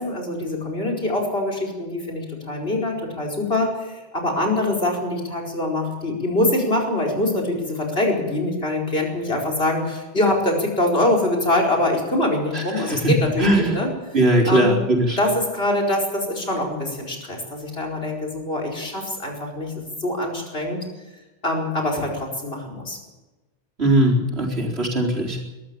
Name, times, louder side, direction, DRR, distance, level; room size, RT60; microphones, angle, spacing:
voice 1, 0.0-13.9 14.5-14.8 15.2-20.8 21.4-23.0, left 1 dB, 70° left, 2 dB, 5.1 m, -24 dB
voice 2, 12.5-13.1 13.4-13.8 14.1-15.2 23.8-25.4, right 1 dB, 80° right, 0 dB, 4.6 m, -20 dB
22.5 x 13.5 x 8.9 m, 1.1 s
omnidirectional pair, 1.0 m